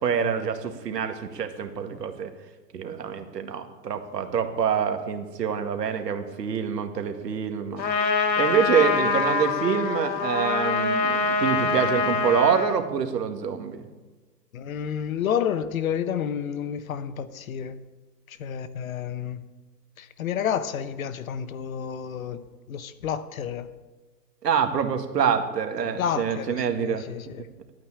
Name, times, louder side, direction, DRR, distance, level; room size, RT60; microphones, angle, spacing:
voice 1, 0.0-2.3 2.7-7.8 8.4-13.8 24.4-27.0, right 7 dB, 70° right, 2.1 m, -26 dB
Trumpet, 7.8-12.8, left 4 dB, 80° left, 2.1 m, -24 dB
voice 2, 14.5-17.8 18.3-19.4 20.0-22.4 22.7-23.7 26.0-27.5, left 8 dB, 55° left, 1.0 m, -30 dB
13.0 x 9.0 x 8.8 m
hypercardioid pair, 140°, 50 cm